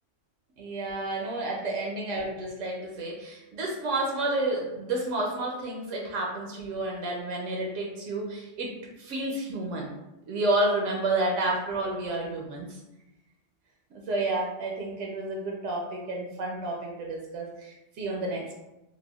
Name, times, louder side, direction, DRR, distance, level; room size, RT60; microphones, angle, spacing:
voice 1, 0.6-9.9 10.3-12.7 13.9-18.5, right 2 dB, 80° right, -1 dB, 0.9 m, -30 dB
3.4 x 2.1 x 2.2 m, 0.95 s
omnidirectional pair, 1.3 m